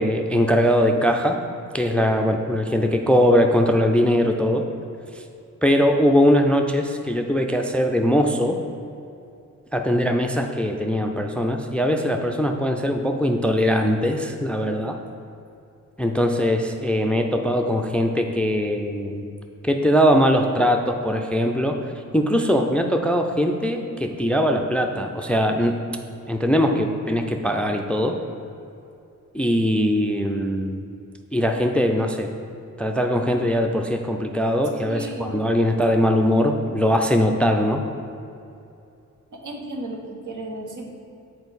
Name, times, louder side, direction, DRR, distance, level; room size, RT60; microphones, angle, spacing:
voice 1, 0.0-1.4 1.7-4.7 5.6-8.6 9.7-15.0 16.0-19.3 19.6-21.8 22.1-25.8 26.3-28.1 29.3-30.8 31.3-32.3 32.8-37.8, equal, 5° left, 4 dB, 0.4 m, -21 dB
voice 2, 34.8-35.4 39.3-40.9, right 1 dB, 75° right, 1 dB, 1.0 m, -34 dB
6.9 x 4.5 x 4.1 m, 2.6 s
cardioid pair, 85°, 32 cm